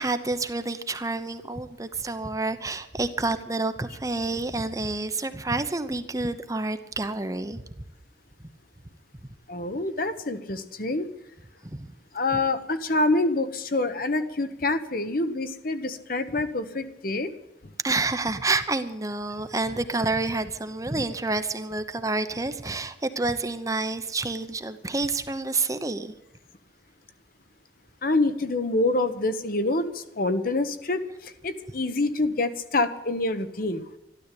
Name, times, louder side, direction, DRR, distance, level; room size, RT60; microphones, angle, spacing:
voice 1, 0.0-7.6 11.6-11.9 17.8-26.1, right 3 dB, 20° right, 10 dB, 0.8 m, -28 dB
voice 2, 9.5-11.1 12.1-17.3 28.0-33.8, left 2 dB, 50° left, 10 dB, 1.2 m, -26 dB
13.5 x 12.5 x 8.5 m, 0.89 s
head